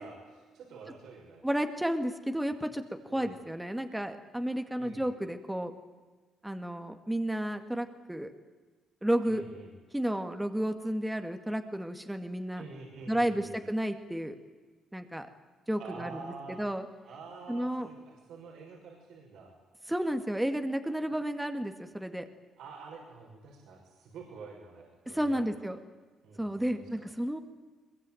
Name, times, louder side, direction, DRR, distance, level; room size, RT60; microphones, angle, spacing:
voice 1, 0.0-1.4 3.1-3.4 4.8-5.1 9.2-9.7 12.5-13.6 15.8-16.6 17.1-19.5 22.6-25.4 26.2-27.1, right 4 dB, 80° right, -1 dB, 6.2 m, -47 dB
voice 2, 1.4-5.7 6.4-8.3 9.0-9.4 9.9-12.6 13.1-14.4 14.9-15.3 15.7-16.9 17.5-17.9 19.9-22.3 25.1-25.8 26.4-27.4, right 1 dB, 5° right, 7 dB, 2.0 m, -32 dB
22.5 x 22.0 x 9.2 m, 1.4 s
cardioid pair, 90°, 0 cm